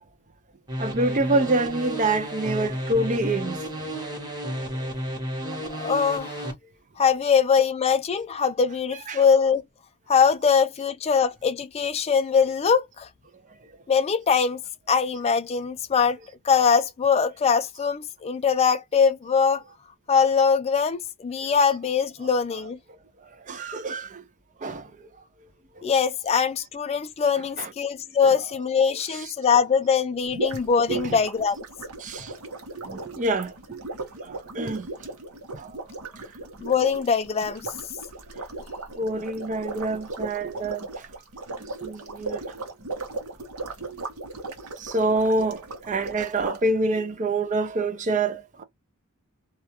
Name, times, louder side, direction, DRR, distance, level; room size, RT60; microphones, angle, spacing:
sound 1, 0.7-6.5, equal, 20° right, 0.9 m, -32 dB
voice 1, 0.8-3.9 4.8-4.9 9.1-9.2 23.5-24.2 24.6-24.9 27.6-27.7 28.2-28.3 30.9-31.2 32.0-32.3 32.9-33.8 34.2-34.9 35.5-35.8 39.0-41.1 41.8-42.4 43.8-44.0 44.8-48.6, right 2 dB, 35° right, 0.5 m, -27 dB
voice 2, 5.7-6.5 7.0-9.6 10.1-13.1 13.9-14.6 14.9-16.2 16.4-19.6 20.1-22.8 25.8-31.6 36.6-37.6, left 6 dB, 30° left, 0.3 m, -22 dB
sound 2, 30.3-46.6, right 2 dB, 75° right, 0.9 m, -37 dB
2.3 x 2.2 x 2.8 m
head